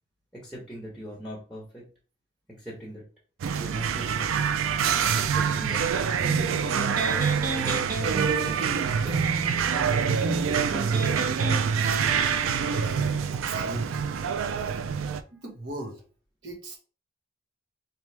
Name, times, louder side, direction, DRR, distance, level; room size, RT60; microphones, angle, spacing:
voice 1, 0.3-1.8 2.6-3.0 3.6-4.5 5.2-5.8 6.1-6.9 7.6-9.2 15.2-15.4, equal, ahead, -3 dB, 1.0 m, -41 dB
sound 1, 3.4-15.2, right 7 dB, 85° right, 0.4 m, -26 dB
Electric guitar, 6.3-13.2, right 2 dB, 45° right, 0.7 m, -33 dB
voice 2, 13.3-14.1 15.3-16.0 16.4-16.8, right 2 dB, 65° right, 1 dB, 1.2 m, -38 dB
3.9 x 3.1 x 3.3 m, 0.37 s
head